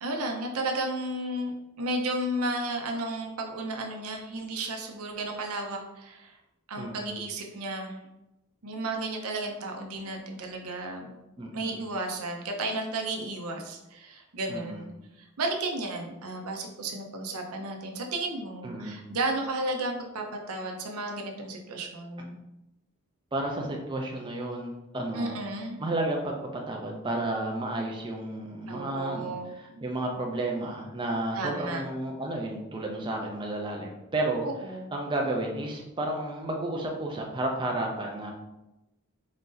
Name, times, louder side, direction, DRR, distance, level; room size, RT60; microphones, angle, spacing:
voice 1, 0.0-6.4 6.7-8.0 8.6-11.1 11.5-14.9 15.2-22.4 25.1-25.8 28.7-29.5 29.7-29.9 31.3-31.8 34.4-34.9, right 2 dB, 75° right, 2 dB, 0.7 m, -33 dB
voice 2, 6.8-7.1 11.4-11.8 14.5-14.8 18.6-19.0 23.3-25.4 25.8-34.5 34.9-38.3, right 1 dB, 20° right, 0 dB, 0.4 m, -32 dB
4.2 x 2.5 x 3.8 m, 0.95 s
head